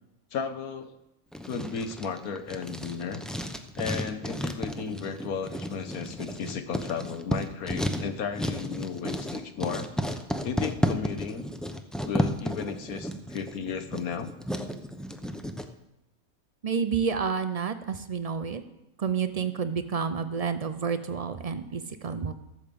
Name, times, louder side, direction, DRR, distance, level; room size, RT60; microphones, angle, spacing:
voice 1, 0.3-1.0 1.5-3.2 3.8-9.9 10.4-11.4 12.0-14.3, left 6 dB, 75° left, 9 dB, 1.4 m, -34 dB
Writing, 1.3-15.7, equal, ahead, 0.4 m, -33 dB
voice 2, 16.6-18.6 19.0-22.3, right 6 dB, 65° right, 10 dB, 0.3 m, -29 dB
13.5 x 8.6 x 6.9 m, 0.90 s
omnidirectional pair, 1.5 m